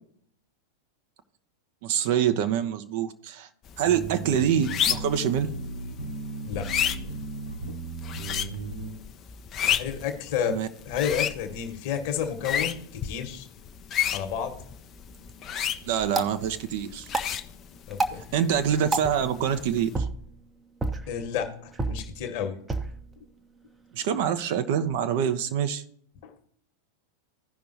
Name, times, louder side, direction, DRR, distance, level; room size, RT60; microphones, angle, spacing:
voice 1, 1.8-3.5 3.8-5.5 10.4-10.7 15.9-17.1 18.1-19.9 23.9-25.8, right 9 dB, 50° right, 9 dB, 0.7 m, -25 dB
sound 1, 3.7-20.0, left 9 dB, 30° left, 0.5 m, -33 dB
sound 2, 3.8-8.9, right 3 dB, 85° right, 4.1 m, -36 dB
voice 2, 9.7-10.6 10.8-13.5 14.1-14.6 17.9-18.2 21.1-22.6 26.2-26.3, left 8 dB, 45° left, 6 dB, 1.3 m, -31 dB
sound 3, 14.9-25.0, right 2 dB, 10° right, 0.7 m, -35 dB
16.0 x 5.5 x 2.6 m, 0.66 s
figure-of-eight pair, 90°, 0 cm